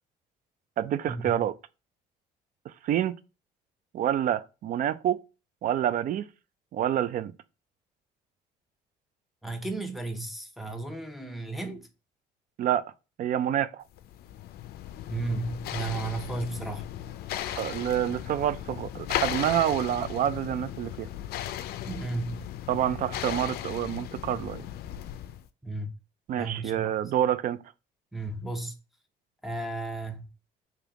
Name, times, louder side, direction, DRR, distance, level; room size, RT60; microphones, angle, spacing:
voice 1, 0.8-1.5 2.7-3.2 3.9-5.2 5.6-6.3 6.7-7.3 12.6-12.8 13.2-13.8 17.6-21.1 22.7-24.6 26.3-27.6, right 11 dB, 55° right, 0.4 m, -27 dB
voice 2, 9.4-11.9 15.1-16.9 21.8-22.4 25.6-25.9 26.4-26.9 28.1-28.8 29.4-30.3, right 3 dB, ahead, 0.7 m, -34 dB
sound 1, 14.0-25.5, left 12 dB, 65° left, 0.4 m, -36 dB
3.5 x 2.9 x 3.4 m
cardioid pair, 110°, 17 cm